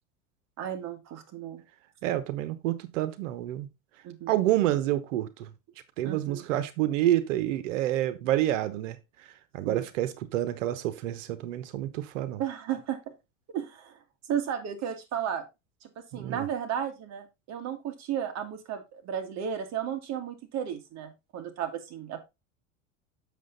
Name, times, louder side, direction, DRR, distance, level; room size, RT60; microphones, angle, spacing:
voice 1, 0.6-1.6 4.0-4.3 6.0-6.4 9.7-9.9 12.4-13.0 13.5-14.0 14.3-15.4 15.8-22.2, right 9 dB, 45° right, 2.1 m, -34 dB
voice 2, 2.0-3.7 4.3-5.5 6.0-9.0 9.5-12.4 16.1-16.4, right 13 dB, 80° right, 1.1 m, -28 dB
7.4 x 6.7 x 3.9 m
supercardioid pair, 120°, 37 cm